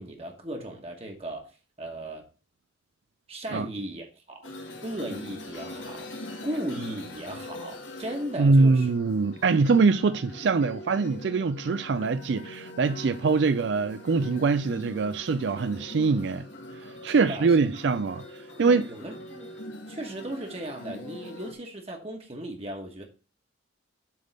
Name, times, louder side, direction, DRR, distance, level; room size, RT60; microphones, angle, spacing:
voice 1, 0.0-1.5 1.8-2.2 3.3-4.5 4.8-6.1 6.4-8.9 17.1-17.6 18.6-19.5 19.9-23.0, right 1 dB, 30° right, 1.3 m, -36 dB
sound 1, 4.4-21.5, left 1 dB, 75° left, 1.7 m, -42 dB
voice 2, 8.4-16.5 17.0-18.2 18.6-18.9, right 4 dB, 70° right, 0.4 m, -23 dB
7.6 x 3.5 x 6.5 m
head